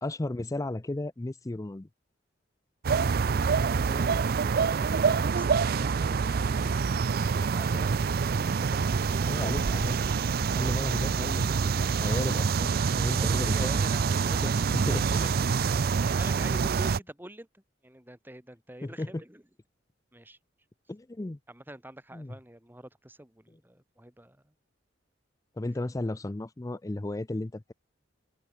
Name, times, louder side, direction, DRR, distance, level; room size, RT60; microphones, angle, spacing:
voice 1, 0.0-1.9 9.3-10.0 10.6-13.6 14.7-15.1 18.8-19.2 20.9-21.4 22.1-22.3 25.6-27.7, left 2 dB, 20° left, 0.5 m, -34 dB
sound 1, 2.8-17.0, right 5 dB, 55° right, 0.4 m, -26 dB
voice 2, 13.1-14.5 14.9-15.3 15.7-19.4 20.1-20.4 21.5-24.5, right 1 dB, 10° right, 3.7 m, -47 dB
head